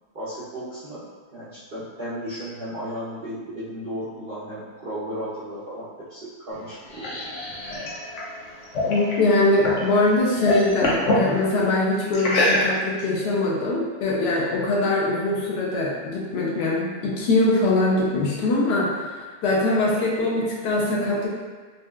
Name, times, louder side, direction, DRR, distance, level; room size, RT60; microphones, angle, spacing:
voice 1, 0.1-7.2, equal, 65° right, -12 dB, 0.5 m, -35 dB
sound 1, 6.5-9.9 10.2-11.3 12.1-13.0, left 1 dB, 60° left, 0.8 m, -25 dB
voice 2, 8.9-21.3, left 2 dB, 85° left, -4 dB, 1.3 m, -22 dB
4.1 x 2.3 x 2.2 m, 1.4 s
omnidirectional pair, 1.8 m